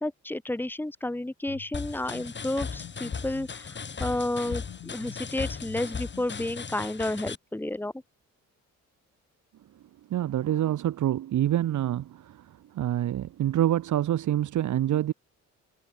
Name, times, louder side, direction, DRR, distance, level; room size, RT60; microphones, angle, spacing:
voice 1, 0.0-7.9, left 1 dB, 5° left, 2.0 m, -31 dB
sound 1, 1.5-1.7 2.1-2.3 2.8-3.6 4.5-5.2 5.7-6.6, left 13 dB, 80° left, 7.4 m, -46 dB
sound 2, 1.7-7.4, left 5 dB, 35° left, 4.3 m, -37 dB
voice 2, 10.1-15.1, right 12 dB, 75° right, 4.6 m, -26 dB
cardioid pair, 90°, 30 cm